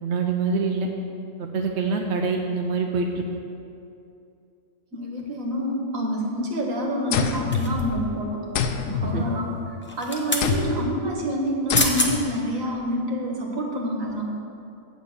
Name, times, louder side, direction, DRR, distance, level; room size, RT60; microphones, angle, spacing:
voice 1, 0.0-0.9 1.4-3.2 9.1-9.2, right 4 dB, 60° right, 2 dB, 1.0 m, -25 dB
voice 2, 4.9-8.4 8.9-9.5 10.0-14.3, equal, 75° right, -1 dB, 1.8 m, -27 dB
sound 1, 7.1-8.2 8.5-9.8 10.4-10.9 11.7-12.3, left 6 dB, 75° left, 1.0 m, -26 dB
sound 2, 7.5-8.1 9.8-10.5 11.5-11.6 11.7-12.1 12.7-12.8, left 1 dB, 10° left, 0.8 m, -26 dB
8.2 x 5.8 x 8.0 m, 2.7 s
omnidirectional pair, 1.4 m